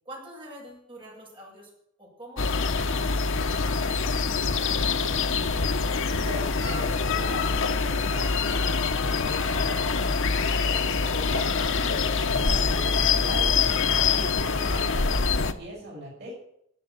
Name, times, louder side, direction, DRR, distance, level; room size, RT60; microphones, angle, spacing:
voice 1, 0.0-1.7 2.0-4.8, right 1 dB, 25° right, -3 dB, 7.5 m, -46 dB
sound 1, 2.4-15.5, left 4 dB, 65° left, 1.0 m, -25 dB
voice 2, 6.2-16.3, equal, 55° right, -4 dB, 6.6 m, -41 dB
13.5 x 8.6 x 9.1 m, 0.72 s
head